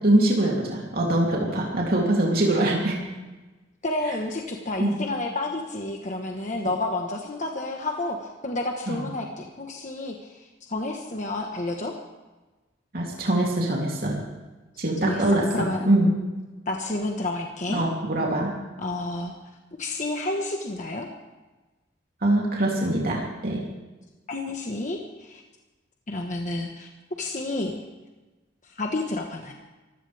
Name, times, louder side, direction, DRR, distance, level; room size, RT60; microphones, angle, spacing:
voice 1, 0.0-3.0 4.8-4.9 6.6-6.7 8.9-9.0 12.9-14.2 14.8-15.4 15.8-16.1 17.7-18.5 22.2-23.7, right 1 dB, 50° right, -3 dB, 3.2 m, -23 dB
voice 2, 3.8-12.0 14.7-16.0 16.7-17.8 18.8-19.3 19.8-21.1 24.3-25.4 26.1-26.9 27.2-27.8 28.6-29.5, left 2 dB, 40° left, 2 dB, 1.4 m, -30 dB
24.0 x 16.0 x 3.5 m, 1.2 s
head